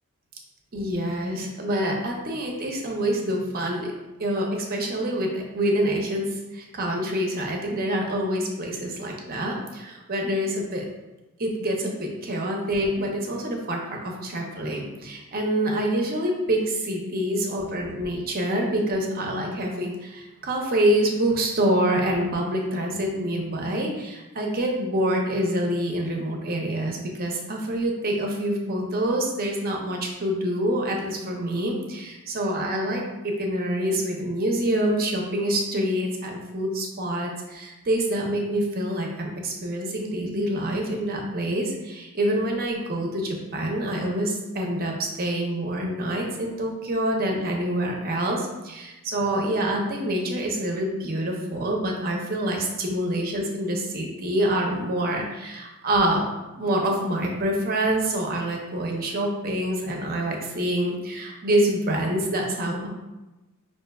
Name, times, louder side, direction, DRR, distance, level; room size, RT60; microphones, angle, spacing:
voice 1, 0.7-3.9 4.2-10.8 11.4-56.2 56.6-62.9, right 1 dB, 40° right, 0 dB, 0.7 m, -26 dB
5.9 x 2.7 x 2.3 m, 1.1 s
head